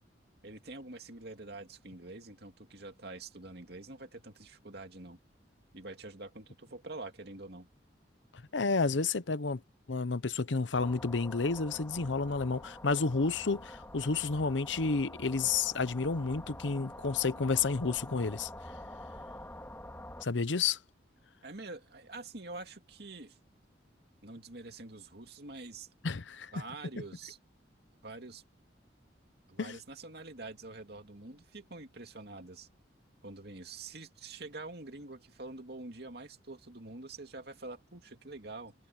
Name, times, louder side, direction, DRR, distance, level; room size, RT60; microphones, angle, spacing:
voice 1, 0.4-5.2 5.7-7.7 21.4-23.4 24.2-25.9 26.5-27.4 28.0-28.4 29.5-32.7 33.2-38.7, right 2 dB, 60° right, 2.5 m, -46 dB
voice 2, 8.5-9.6 9.9-18.5 20.2-20.8 26.0-26.5 29.6-29.8, left 4 dB, 85° left, 0.8 m, -30 dB
sound 1, 10.7-20.3, left 1 dB, 15° left, 3.0 m, -47 dB
head